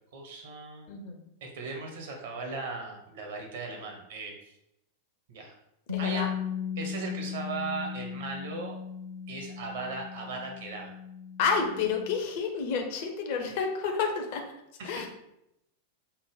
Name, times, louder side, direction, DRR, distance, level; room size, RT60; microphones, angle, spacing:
voice 1, 0.1-0.9 1.4-4.3 5.3-5.5 6.0-6.3 6.8-8.8 9.3-10.9 14.8-15.0, right 4 dB, 55° right, 1 dB, 0.9 m, -37 dB
voice 2, 0.9-1.3 5.9-6.3 11.4-14.5 14.8-15.1, left 5 dB, 50° left, 4 dB, 0.5 m, -30 dB
Bass guitar, 5.9-12.1, left 8 dB, 85° right, 0.4 m, -37 dB
5.5 x 2.1 x 3.2 m, 0.83 s
figure-of-eight pair, 90°, 0 cm